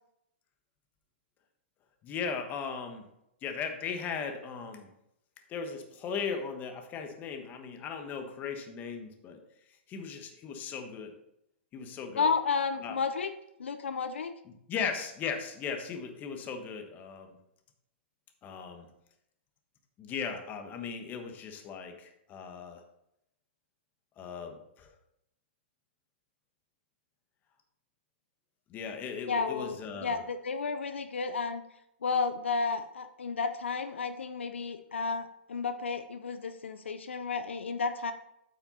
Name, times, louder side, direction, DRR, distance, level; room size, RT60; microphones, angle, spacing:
voice 1, 2.0-3.0 3.4-4.9 5.5-9.4 9.9-11.1 11.7-12.3 12.8-13.0 14.7-17.4 18.4-18.9 20.0-22.8 24.2-24.9 28.7-30.2, left 6 dB, 30° left, 5 dB, 1.3 m, -37 dB
voice 2, 12.1-13.3 13.6-14.3 29.2-31.6 32.0-38.1, left 5 dB, 85° left, 9 dB, 0.6 m, -32 dB
8.7 x 5.7 x 4.2 m, 0.81 s
hypercardioid pair, 120°, 6 cm